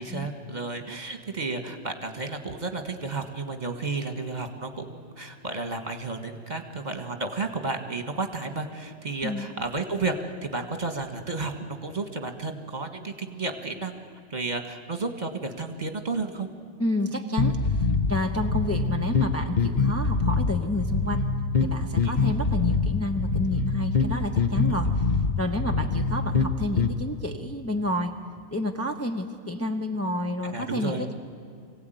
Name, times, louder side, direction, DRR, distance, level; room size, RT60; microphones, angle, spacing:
voice 1, 0.0-10.1 10.4-16.5 22.0-22.2 30.4-31.1, right 3 dB, 40° right, 6 dB, 1.7 m, -32 dB
voice 2, 16.8-21.3 21.6-25.1 25.4-28.1 28.5-31.1, left 1 dB, 15° left, 3 dB, 0.9 m, -30 dB
sound 1, 17.4-26.9, left 4 dB, 45° left, 1.0 m, -25 dB
24.5 x 16.5 x 9.2 m, 2.4 s
omnidirectional pair, 1.2 m